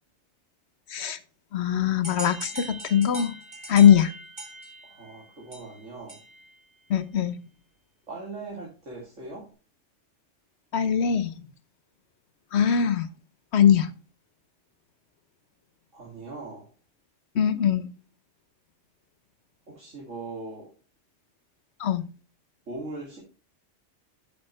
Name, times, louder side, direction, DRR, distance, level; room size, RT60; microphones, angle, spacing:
voice 1, 1.5-3.3 3.7-4.1 6.9-7.4 10.7-11.3 12.5-13.1 13.5-13.9 17.3-17.8 21.8-22.1, left 8 dB, 65° left, 1.0 m, -21 dB
sound 1, 2.0-6.6, right 2 dB, 25° right, 1.8 m, -41 dB
voice 2, 4.8-6.2 8.1-9.5 15.9-16.7 19.7-20.7 22.7-23.2, right 3 dB, 90° right, 2.8 m, -40 dB
8.6 x 7.2 x 3.2 m
omnidirectional pair, 1.3 m